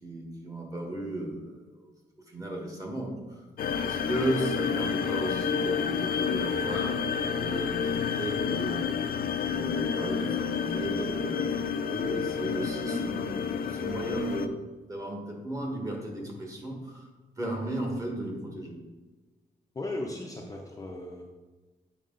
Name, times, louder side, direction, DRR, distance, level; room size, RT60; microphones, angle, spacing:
voice 1, 0.0-1.8 2.3-3.4 3.8-8.9 9.5-14.6 14.9-17.1 17.4-18.8, right 1 dB, 20° right, 0 dB, 1.4 m, -35 dB
sound 1, 3.6-14.5, left 7 dB, 60° left, 0.4 m, -30 dB
voice 2, 19.7-21.2, left 2 dB, 20° left, 0 dB, 0.6 m, -36 dB
8.2 x 4.7 x 3.8 m, 1.2 s
wide cardioid pair, 165°, 17 cm